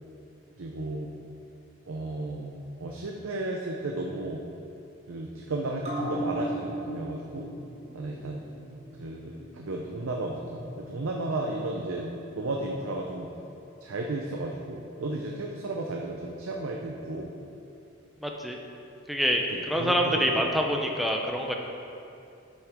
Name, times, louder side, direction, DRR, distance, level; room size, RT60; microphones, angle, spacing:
voice 1, 0.6-1.1 1.8-4.4 5.1-7.5 7.9-8.4 9.0-13.3 13.8-17.3 19.5-20.8, right 2 dB, 85° right, 0 dB, 0.6 m, -34 dB
sound 1, 5.8-12.7 13.1-13.2, right 1 dB, 30° right, 1.5 m, -38 dB
voice 2, 18.2-18.6 19.1-21.5, equal, ahead, 1 dB, 0.5 m, -26 dB
8.6 x 7.4 x 3.6 m, 2.7 s
head